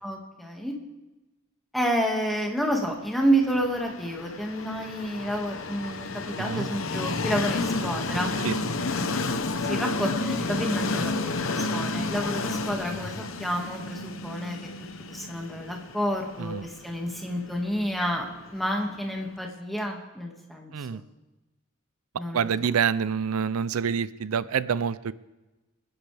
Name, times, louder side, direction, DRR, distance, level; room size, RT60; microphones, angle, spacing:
voice 1, 0.0-0.7 1.7-8.3 9.6-14.6 15.1-18.2 18.5-21.0 22.2-22.4, equal, ahead, 0 dB, 1.9 m, -29 dB
Train, 3.4-19.2, left 3 dB, 70° left, 0.9 m, -31 dB
voice 2, 22.3-25.1, right 7 dB, 90° right, 16 dB, 0.5 m, -27 dB
26.0 x 10.5 x 3.4 m, 1.1 s
head